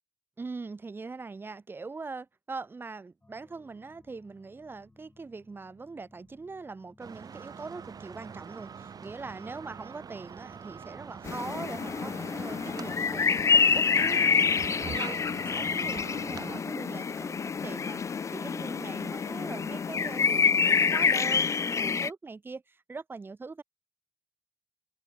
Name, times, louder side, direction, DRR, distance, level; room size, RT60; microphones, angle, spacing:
voice 1, 0.4-23.6, right 4 dB, 30° right, 0.6 m, -42 dB
sound 1, 3.2-13.3, left 2 dB, 20° left, 2.8 m, -62 dB
sound 2, 7.0-16.6, right 6 dB, 55° right, 2.2 m, -44 dB
sound 3, 11.2-22.1, left 6 dB, 40° left, 0.4 m, -27 dB
cardioid pair, 70°, 7 cm